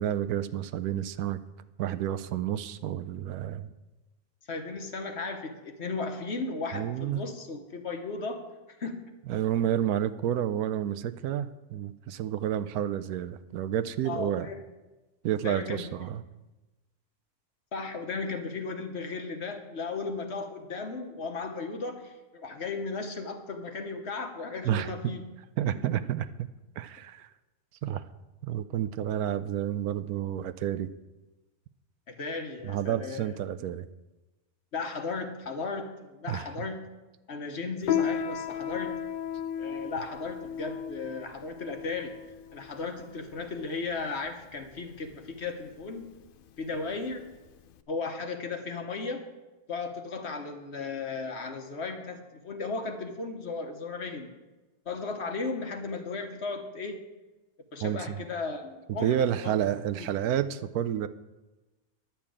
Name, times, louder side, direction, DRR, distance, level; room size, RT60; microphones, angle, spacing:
voice 1, 0.0-1.4 1.8-3.7 6.7-7.2 9.3-14.5 15.2-16.2 24.6-25.1 25.6-26.5 26.8-27.3 27.8-28.0 28.4-30.9 32.6-33.9 36.3-36.7 57.8-58.2 58.9-61.1, right 10 dB, 80° right, 12 dB, 1.1 m, -30 dB
voice 2, 4.5-8.5 8.8-9.0 14.0-14.6 15.4-15.9 17.7-25.2 25.7-25.8 32.1-33.4 34.7-36.9 37.3-39.0 39.6-42.1 42.5-46.1 46.6-47.3 47.9-49.3 49.7-54.3 54.9-57.0 57.7-59.2 59.4-59.6 60.0-60.1, left 4 dB, 50° left, 6 dB, 1.2 m, -35 dB
Piano, 37.8-47.8, left 8 dB, 80° left, 0.5 m, -35 dB
11.0 x 5.8 x 8.6 m, 1.1 s
omnidirectional pair, 1.6 m